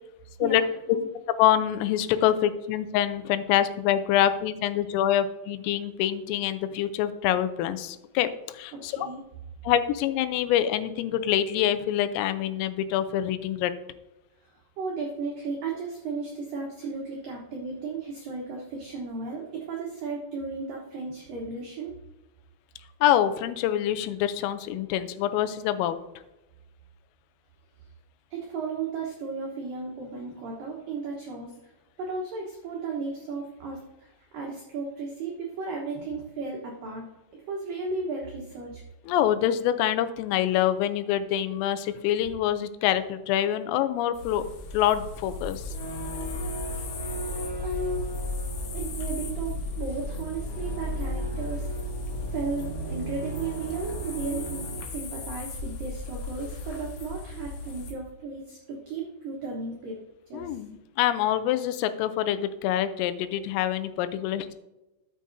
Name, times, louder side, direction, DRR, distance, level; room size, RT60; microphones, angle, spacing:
voice 1, 0.4-1.1 5.2-5.3 8.7-9.2 14.8-21.9 28.3-31.5 32.0-33.8 34.3-37.0 37.5-38.8 41.9-42.0 46.7-47.1 47.6-48.0 48.7-51.7 52.3-60.0 60.3-60.5, right 4 dB, 80° right, -1 dB, 2.0 m, -35 dB
voice 2, 1.4-8.3 8.5-9.1 9.6-13.7 23.0-26.0 39.1-44.4 44.7-45.6 60.3-64.5, left 11 dB, 85° left, 11 dB, 3.3 m, -25 dB
sound 1, 44.1-57.9, left 2 dB, 65° left, 3.1 m, -37 dB
sound 2, 45.7-54.8, right 1 dB, 30° left, 2.1 m, -36 dB
13.0 x 7.7 x 2.7 m, 0.98 s
omnidirectional pair, 5.8 m